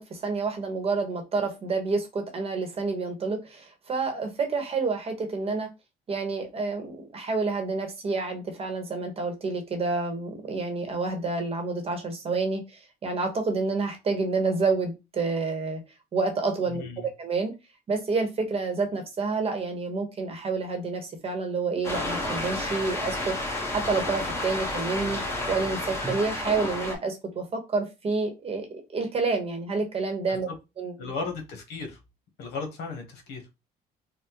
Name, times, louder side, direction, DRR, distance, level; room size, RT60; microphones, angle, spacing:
voice 1, 0.0-5.7 6.1-15.8 16.1-17.5 17.9-25.2 25.5-30.5 30.8-30.9, right 4 dB, 35° right, 4 dB, 1.0 m, -29 dB
voice 2, 16.7-17.1 30.3-30.4 31.0-32.0 32.4-33.4, left 4 dB, 75° left, 4 dB, 1.0 m, -35 dB
sound 1, 21.8-27.0, left 1 dB, 15° left, 1.1 m, -31 dB
3.5 x 2.2 x 2.9 m, 0.25 s
cardioid pair, 110°, 17 cm